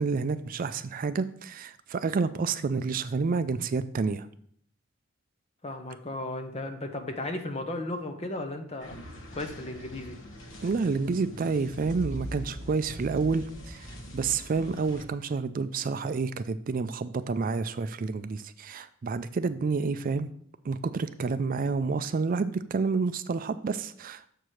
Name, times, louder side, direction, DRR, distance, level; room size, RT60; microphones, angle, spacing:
voice 1, 0.0-4.3 10.6-20.3 20.6-24.3, right 4 dB, 45° right, 12 dB, 0.4 m, -29 dB
voice 2, 5.6-10.2, left 2 dB, 30° left, 5 dB, 0.9 m, -35 dB
sound 1, 8.8-15.1, equal, 75° left, 1.2 m, -42 dB
6.9 x 4.6 x 6.3 m, 0.63 s
head